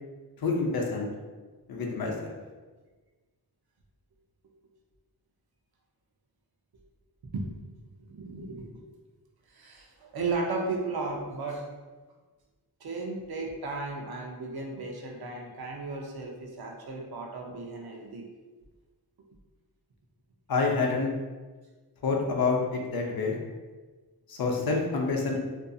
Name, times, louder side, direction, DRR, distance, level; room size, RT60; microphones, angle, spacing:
voice 1, 0.4-1.1 1.7-2.3 20.5-21.1 22.0-23.4 24.3-25.4, left 4 dB, 65° left, 0 dB, 0.5 m, -27 dB
voice 2, 8.0-8.7 9.5-11.7 12.8-18.3, right 3 dB, 65° right, 1 dB, 0.5 m, -35 dB
2.5 x 2.3 x 2.5 m, 1.3 s
wide cardioid pair, 105°, 40 cm